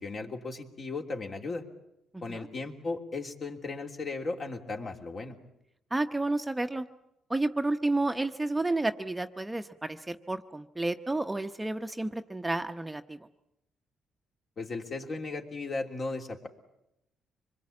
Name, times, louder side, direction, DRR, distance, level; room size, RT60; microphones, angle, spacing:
voice 1, 0.0-1.6 2.2-5.3 14.6-16.5, left 3 dB, 45° left, 2 dB, 3.1 m, -36 dB
voice 2, 2.1-2.5 5.9-6.9 7.3-13.2, right 2 dB, 10° right, 7 dB, 0.9 m, -31 dB
25.5 x 21.5 x 8.6 m, 0.83 s
cardioid pair, 90°, 0 cm